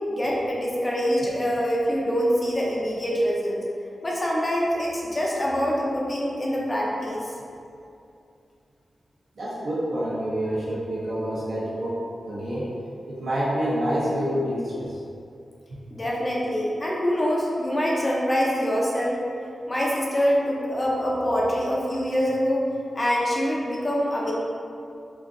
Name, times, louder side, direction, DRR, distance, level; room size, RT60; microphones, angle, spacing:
voice 1, 0.0-3.6 4.0-7.3 15.9-19.2 19.7-22.6 23.0-24.3, equal, 25° left, -4 dB, 0.5 m, -25 dB
voice 2, 9.4-12.7 13.1-14.9 15.7-15.8, equal, 70° right, -9 dB, 1.1 m, -27 dB
4.5 x 2.5 x 2.6 m, 2.5 s
wide cardioid pair, 135°, 0 cm